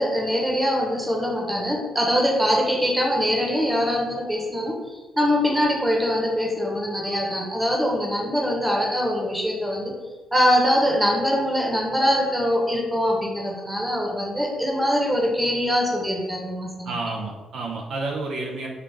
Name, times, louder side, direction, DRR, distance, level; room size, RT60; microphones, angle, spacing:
voice 1, 0.0-9.9 10.3-16.9, equal, 10° right, -1 dB, 1.2 m, -23 dB
voice 2, 16.8-18.7, right 3 dB, 70° right, 0 dB, 0.7 m, -30 dB
5.7 x 2.4 x 3.4 m, 1.3 s
cardioid pair, 90°, 0 cm